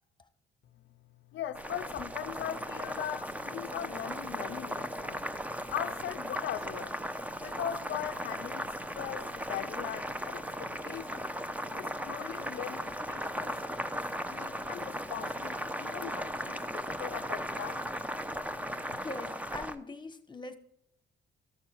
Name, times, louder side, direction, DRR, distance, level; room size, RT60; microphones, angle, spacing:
voice 1, 1.3-5.2 5.7-7.0 7.4-11.3 11.7-13.6 13.9-17.9, left 11 dB, 70° left, 0.5 m, -40 dB
Boiling, 1.5-19.8, equal, 5° right, 0.8 m, -37 dB
voice 2, 19.0-20.6, left 3 dB, 25° left, 1.3 m, -42 dB
14.0 x 6.9 x 4.5 m
cardioid pair, 90°, 20 cm